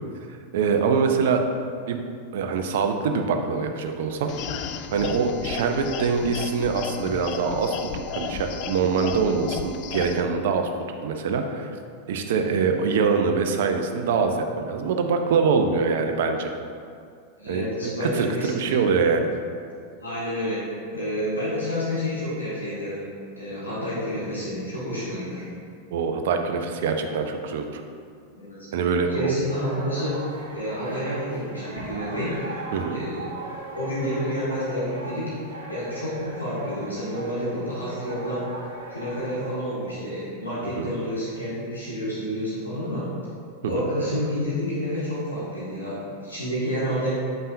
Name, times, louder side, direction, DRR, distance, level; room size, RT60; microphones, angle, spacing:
voice 1, 0.5-1.4 1.9-2.0 2.3-10.7 11.0-11.7 12.1-16.5 17.5-19.3 25.9-27.8 28.7-29.3 32.7-33.0 40.8-40.9 43.6-43.9, right 5 dB, 55° right, 5 dB, 0.5 m, -24 dB
sound 1, 4.3-10.2, left 7 dB, 40° left, 0.4 m, -34 dB
voice 2, 17.4-18.8 20.0-20.6 20.9-23.1 23.4-25.5 28.4-28.8 29.1-32.4 32.9-33.3 33.7-35.3 35.7-38.4 38.9-43.1 43.6-47.2, equal, 80° left, -8 dB, 1.3 m, -29 dB
sound 2, 29.5-39.5, right 2 dB, 70° right, 1.2 m, -39 dB
8.1 x 5.4 x 2.6 m, 2.3 s
figure-of-eight pair, 90°, 0 cm